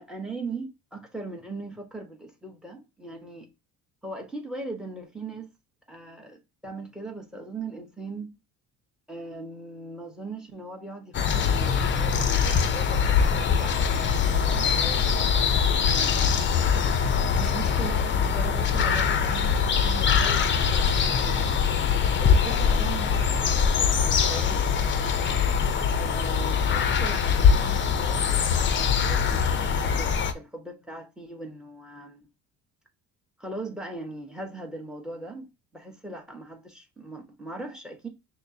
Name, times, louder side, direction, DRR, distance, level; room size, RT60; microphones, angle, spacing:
voice 1, 0.0-3.5 4.0-5.5 5.9-8.3 9.1-15.1 15.8-16.8 17.4-21.6 22.2-24.0 24.3-24.8 25.9-32.3 33.4-35.5 35.7-38.1, right 2 dB, ahead, 1.1 m, -39 dB
sound 1, 11.1-30.3, left 6 dB, 35° left, 0.6 m, -23 dB
6.3 x 2.1 x 2.7 m
cardioid pair, 115°, 34 cm